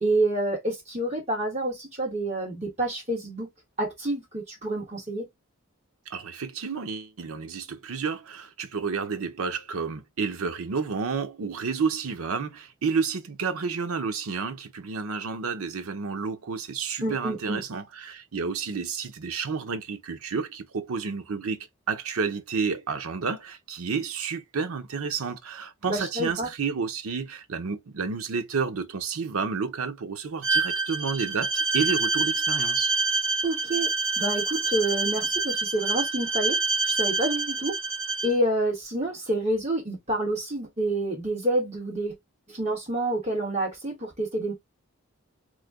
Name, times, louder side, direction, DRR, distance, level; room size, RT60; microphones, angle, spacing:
voice 1, 0.0-3.5 3.8-5.3 17.0-17.6 25.9-26.5 33.4-33.9 34.2-36.6 36.8-37.8 38.2-42.1 42.5-44.5, right 1 dB, 30° right, 1.4 m, -28 dB
voice 2, 6.1-32.9, right 5 dB, 90° right, 0.6 m, -30 dB
Bowed string instrument, 30.4-38.3, right 3 dB, 65° right, 1.2 m, -27 dB
3.1 x 2.2 x 3.5 m
head